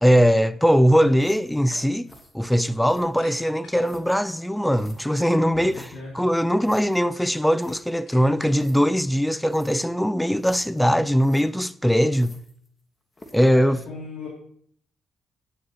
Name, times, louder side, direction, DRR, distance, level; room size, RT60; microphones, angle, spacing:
voice 1, 0.0-2.1 2.3-5.7 6.1-12.4 13.3-13.8, equal, 5° left, 0.4 m, -20 dB
sound 1, 0.7-0.9 1.7-1.9 2.4-2.7 3.2-3.9 4.5-5.8 6.5-6.8 7.2-9.0, left 2 dB, 85° left, 3.9 m, -49 dB
sound 2, 1.1-1.6 2.1-2.4 2.9-3.4 3.8-4.2 4.8-6.0 6.6-7.0 7.3-7.4 7.6-7.8 8.6-8.8 9.5-9.9 10.4-10.8 11.2-11.4 12.1-12.8 13.1-13.5, left 1 dB, 20° left, 1.4 m, -47 dB
voice 2, 5.5-6.1 13.5-14.3, left 3 dB, 55° left, 2.6 m, -37 dB
10.0 x 8.8 x 2.9 m
cardioid pair, 90°, 0 cm